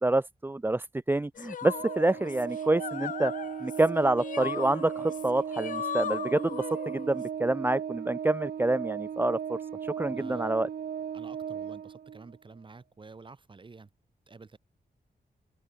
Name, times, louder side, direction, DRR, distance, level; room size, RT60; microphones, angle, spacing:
voice 1, 0.0-3.3 3.6-10.7, right 2 dB, 15° right, 0.9 m, -27 dB
sound 1, 1.4-7.3, left 8 dB, 55° left, 0.6 m, -38 dB
Organ, 1.7-12.4, right 8 dB, 70° right, 1.3 m, -37 dB
voice 2, 10.1-10.5 11.1-13.9 14.3-14.6, right 4 dB, 30° right, 8.0 m, -50 dB
open air
wide cardioid pair, 155°, 16 cm